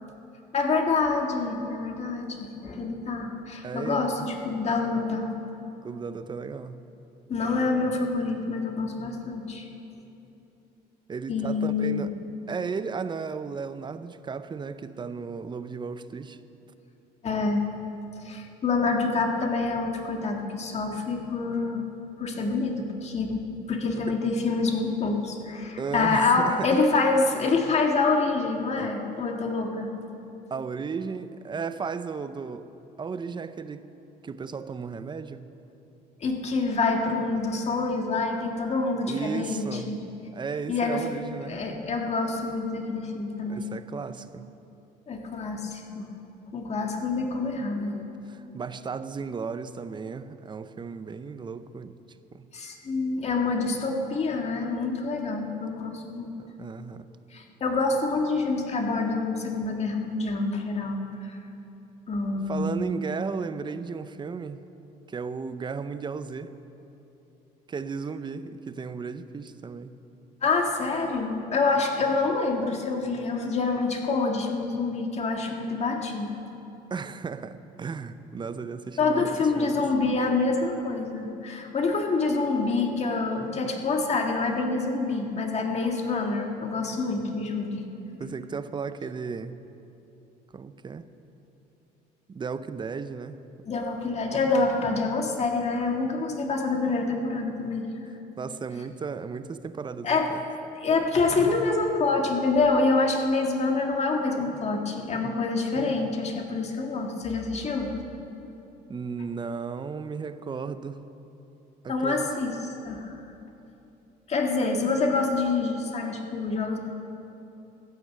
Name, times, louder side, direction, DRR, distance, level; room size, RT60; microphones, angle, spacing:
voice 1, 0.5-5.3 7.3-9.7 11.3-12.1 17.2-17.6 18.2-21.8 22.2-29.9 36.2-40.0 40.7-41.0 41.5-43.7 45.1-46.1 46.5-48.0 52.5-56.3 57.3-61.4 62.1-62.9 70.4-76.4 79.0-87.8 93.7-97.9 100.0-100.3 100.8-107.9 111.9-113.2 114.3-116.8, left 3 dB, 40° left, 2 dB, 1.9 m, -26 dB
voice 2, 3.6-4.3 5.8-6.8 11.1-12.1 12.5-16.4 24.1-24.2 25.8-26.9 28.8-28.9 30.5-32.7 33.0-33.9 34.2-35.5 39.1-39.9 40.3-41.6 43.4-44.5 48.3-52.0 52.3-52.5 56.4-57.1 62.4-64.6 65.1-66.5 67.7-69.9 76.9-79.8 88.2-89.6 90.5-91.0 92.3-93.4 98.4-100.4 105.1-105.4 108.9-111.0 111.8-112.3, right 5 dB, 25° right, 12 dB, 0.6 m, -35 dB
14.5 x 9.7 x 7.5 m, 3.0 s
cardioid pair, 110°, 17 cm